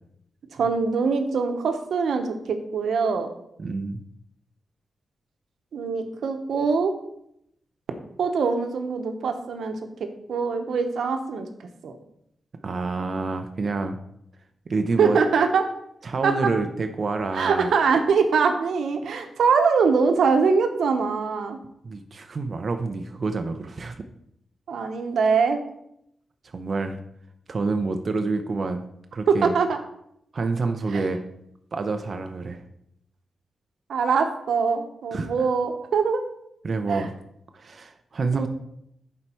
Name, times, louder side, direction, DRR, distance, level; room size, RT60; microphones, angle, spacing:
voice 1, 0.5-3.3 5.7-6.9 8.2-9.8 10.3-11.5 11.8-12.0 15.0-15.6 16.2-16.5 17.3-21.6 24.7-25.6 29.3-29.8 30.9-31.0 33.9-36.2 36.9-37.1 38.3-38.5, right 5 dB, 85° right, 6 dB, 1.0 m, -23 dB
voice 2, 3.6-4.0 12.6-14.0 14.7-15.2 16.0-17.7 21.8-23.9 26.4-27.0 27.5-28.8 29.1-29.5 30.3-31.2 31.7-32.6 35.1-35.3 36.6-37.1 37.5-38.5, right 3 dB, 45° right, 6 dB, 0.6 m, -27 dB
11.0 x 4.5 x 4.4 m, 0.76 s
wide cardioid pair, 135°, 0 cm